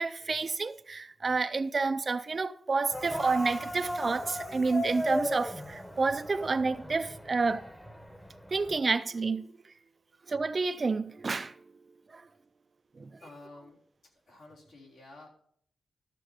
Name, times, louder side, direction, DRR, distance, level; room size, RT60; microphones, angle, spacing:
voice 1, 0.0-7.6 8.5-9.5 10.3-11.5 12.1-12.2 13.0-13.1, right 4 dB, 35° right, 0.4 m, -29 dB
sound 1, 2.9-8.8, equal, 10° left, 1.0 m, -37 dB
voice 2, 13.2-13.8 14.3-15.3, left 2 dB, 75° left, 3.7 m, -51 dB
13.0 x 6.8 x 5.0 m
wide cardioid pair, 150°, 0 cm